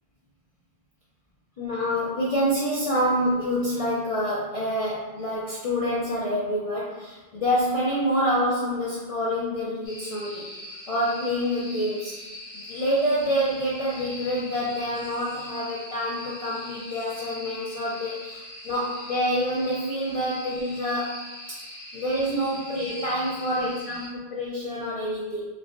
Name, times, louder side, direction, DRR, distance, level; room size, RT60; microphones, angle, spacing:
voice 1, 1.6-10.5 10.9-12.1 12.5-21.2 21.5-21.6 21.9-25.5, equal, 55° left, -6 dB, 0.4 m, -27 dB
sound 1, 9.8-24.1, left 1 dB, 90° left, 1.1 m, -41 dB
3.3 x 2.1 x 2.4 m, 1.2 s
omnidirectional pair, 1.0 m